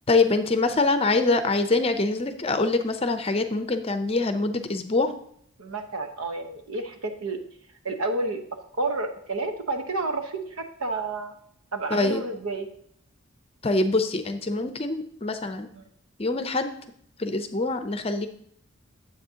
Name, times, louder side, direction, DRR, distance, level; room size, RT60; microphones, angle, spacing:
voice 1, 0.1-5.1 11.9-12.2 13.6-15.7 16.2-16.7 17.2-18.3, left 3 dB, 25° left, 9 dB, 0.6 m, -24 dB
voice 2, 5.6-7.4 7.8-8.4 8.8-11.4 11.7-12.7 15.7-15.8, right 2 dB, 90° right, 6 dB, 1.1 m, -30 dB
9.3 x 7.8 x 2.8 m, 0.67 s
head